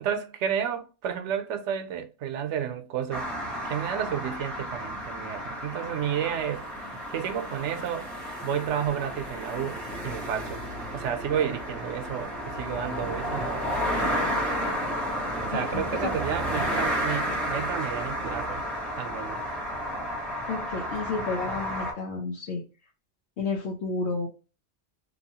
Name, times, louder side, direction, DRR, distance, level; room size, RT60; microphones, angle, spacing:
voice 1, 0.0-3.3 3.6-6.6 7.1-8.1 8.4-10.6 10.9-14.3 15.4-18.6 18.9-19.4, right 9 dB, 85° right, 0.9 m, -31 dB
sound 1, 3.1-21.9, equal, ahead, 0.8 m, -32 dB
voice 2, 15.5-15.9 20.5-22.6 23.4-24.3, left 4 dB, 70° left, 1.0 m, -31 dB
2.9 x 2.2 x 2.7 m
omnidirectional pair, 1.2 m